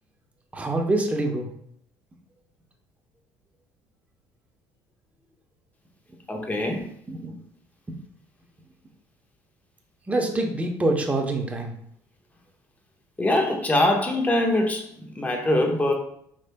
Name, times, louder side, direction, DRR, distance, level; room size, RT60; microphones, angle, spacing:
voice 1, 0.5-1.5 6.7-6.8 7.1-7.4 10.1-11.7, right 2 dB, 15° right, 2 dB, 0.8 m, -25 dB
voice 2, 6.3-6.9 13.2-15.9, left 1 dB, 20° left, 2 dB, 0.9 m, -23 dB
4.9 x 3.3 x 2.2 m, 0.69 s
supercardioid pair, 95°, 8 cm